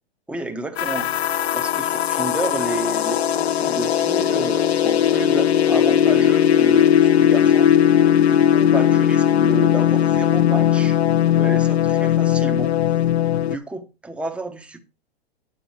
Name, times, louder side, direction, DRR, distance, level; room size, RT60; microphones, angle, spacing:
voice 1, 0.3-1.1 1.5-7.7 8.2-11.0 11.3-12.8 13.4-14.8, right 2 dB, 5° right, 1.0 m, -31 dB
sound 1, 0.8-13.6, left 10 dB, 80° left, 0.6 m, -18 dB
8.9 x 7.6 x 4.4 m
hypercardioid pair, 120°, 32 cm